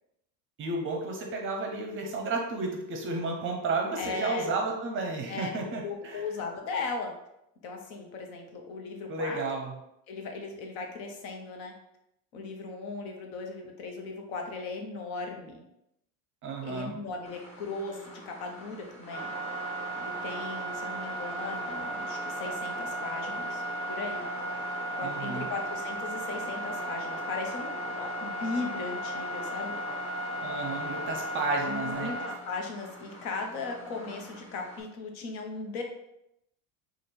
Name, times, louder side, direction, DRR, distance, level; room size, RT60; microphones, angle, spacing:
voice 1, 0.6-6.2 9.1-9.7 16.4-17.0 25.0-25.5 30.4-32.1, right 3 dB, 30° right, 2 dB, 0.6 m, -32 dB
voice 2, 4.0-4.5 5.3-5.5 5.8-7.1 7.6-9.4 10.1-11.7 12.3-15.6 16.6-19.3 20.0-23.6 23.9-24.3 25.0-29.8 31.7-35.8, left 4 dB, 80° left, 2 dB, 1.0 m, -37 dB
sound 1, 17.2-34.8, right 1 dB, 15° left, 0.7 m, -36 dB
3.3 x 2.4 x 4.3 m, 0.82 s
cardioid pair, 155°, 42 cm